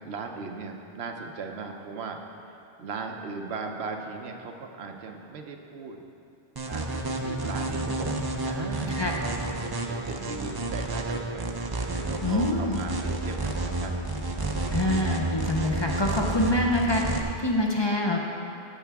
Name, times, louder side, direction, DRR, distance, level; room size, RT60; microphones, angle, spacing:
voice 1, 0.0-2.2 2.8-6.0 6.7-11.5 12.1-14.0 14.2-14.9, right 4 dB, 85° right, 3 dB, 1.0 m, -38 dB
sound 1, 6.6-17.2, right 2 dB, 30° right, 0.5 m, -30 dB
voice 2, 12.2-12.8 14.7-18.2, left 1 dB, 30° left, 0 dB, 0.6 m, -25 dB
15.0 x 5.7 x 3.5 m, 2.6 s
omnidirectional pair, 1.0 m